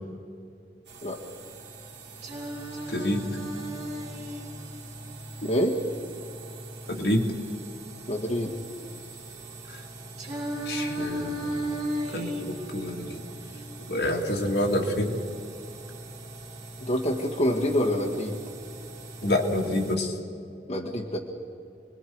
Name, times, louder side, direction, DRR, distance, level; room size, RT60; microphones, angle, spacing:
sound 1, 0.8-20.0, right 2 dB, 70° right, 3.1 m, -43 dB
Singing, 2.2-6.2 10.2-14.2, equal, 40° right, 3.9 m, -35 dB
voice 1, 2.9-3.2 6.9-7.3 9.7-9.8 10.7-11.6 12.1-13.2 13.9-15.2 19.2-20.2, left 1 dB, 65° left, 0 dB, 2.4 m, -27 dB
voice 2, 5.4-5.8 8.1-8.5 16.8-18.4 20.7-21.2, equal, 40° left, -3 dB, 1.8 m, -26 dB
29.5 x 21.5 x 4.7 m, 2.5 s
head